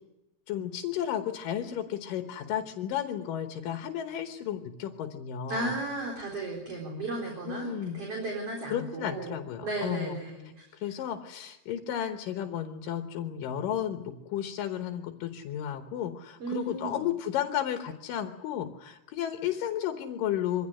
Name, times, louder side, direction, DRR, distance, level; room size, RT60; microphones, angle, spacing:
voice 1, 0.5-5.7 7.5-8.0 8.7-10.2 10.8-20.7, left 10 dB, 65° left, 6 dB, 2.4 m, -33 dB
voice 2, 5.5-9.3 9.6-10.9 16.4-17.1, right 2 dB, 35° right, -1 dB, 5.0 m, -35 dB
23.5 x 16.5 x 9.9 m, 0.94 s
omnidirectional pair, 4.7 m